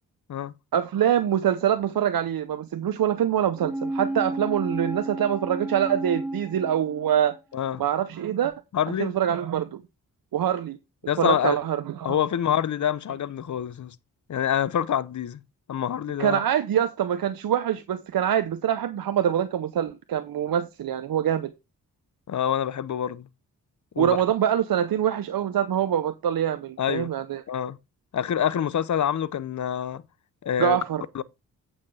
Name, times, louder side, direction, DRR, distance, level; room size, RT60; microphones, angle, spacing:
voice 1, 0.7-7.4 7.8-8.5 9.0-9.8 10.3-10.8 11.2-12.2 16.2-21.5 24.0-27.4 30.6-31.0, right 10 dB, 65° right, 0.8 m, -24 dB
sound 1, 3.6-7.4 7.7-7.8, right 1 dB, 5° right, 0.8 m, -32 dB
voice 2, 8.7-9.1 11.1-11.6 12.0-13.9 14.3-15.4 15.7-16.4 22.3-23.3 24.0-24.2 26.8-27.1 27.5-27.8 28.1-30.0 30.4-30.8 31.1-31.2, left 9 dB, 50° left, 0.8 m, -26 dB
8.5 x 5.9 x 4.8 m
supercardioid pair, 40°, 38 cm